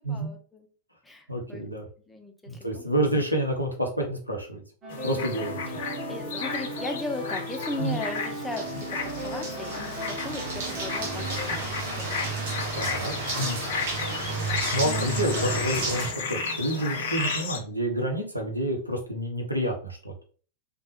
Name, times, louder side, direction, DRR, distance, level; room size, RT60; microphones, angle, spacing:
voice 1, 0.1-0.7 1.0-1.7 2.1-2.3 2.6-2.8 6.1-11.7 12.0-12.3 14.8-15.3, left 2 dB, 5° left, 2 dB, 0.6 m, -37 dB
voice 2, 1.3-1.9 2.5-4.6 5.0-5.6 7.8-8.0 12.7-13.6 14.7-20.1, right 1 dB, 85° right, 2 dB, 0.7 m, -29 dB
sound 1, 4.8-11.5, right 2 dB, 25° right, 1.4 m, -37 dB
sound 2, 4.9-17.6, left 5 dB, 55° left, 0.6 m, -34 dB
sound 3, 7.5-16.1, right 3 dB, 55° right, 0.9 m, -32 dB
3.2 x 2.2 x 2.9 m, 0.41 s
figure-of-eight pair, 90°, 0 cm